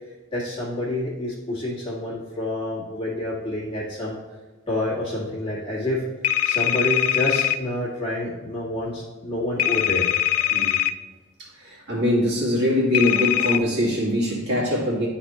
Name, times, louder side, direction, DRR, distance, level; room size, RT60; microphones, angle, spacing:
voice 1, 0.3-4.2 4.7-6.1 6.4-10.1 10.4-10.6, left 1 dB, 25° left, -6 dB, 1.8 m, -28 dB
sound 1, 6.2-7.6 9.6-10.9 12.9-13.6, left 13 dB, 80° left, 0.3 m, -22 dB
voice 2, 11.6-15.1, left 1 dB, 50° right, -5 dB, 2.3 m, -22 dB
11.5 x 4.1 x 3.0 m, 1.3 s
head